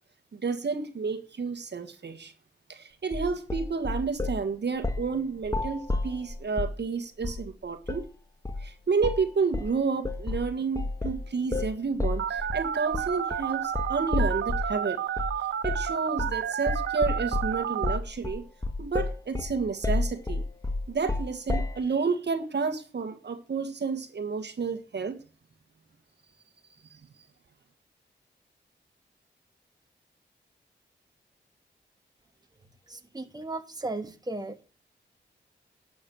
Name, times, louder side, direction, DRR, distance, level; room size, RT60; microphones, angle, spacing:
voice 1, 0.3-2.3 2.7-8.1 8.6-15.0 15.6-18.4 18.8-20.4 20.9-25.2, right 5 dB, 60° right, 1.6 m, -30 dB
sound 1, 3.1-4.4 4.8-5.1 5.4-6.8 7.2-7.5 7.9-8.1 8.5-8.7 9.0-9.3 9.5-14.8 15.2-15.4 15.6-15.9 16.2-16.4 16.7-21.8, left 2 dB, 15° left, 1.4 m, -31 dB
Telephone, 12.2-18.0, right 9 dB, 75° right, 0.6 m, -31 dB
voice 2, 32.9-34.6, right 2 dB, 20° right, 1.7 m, -36 dB
12.0 x 7.2 x 6.3 m
cardioid pair, 50°, 20 cm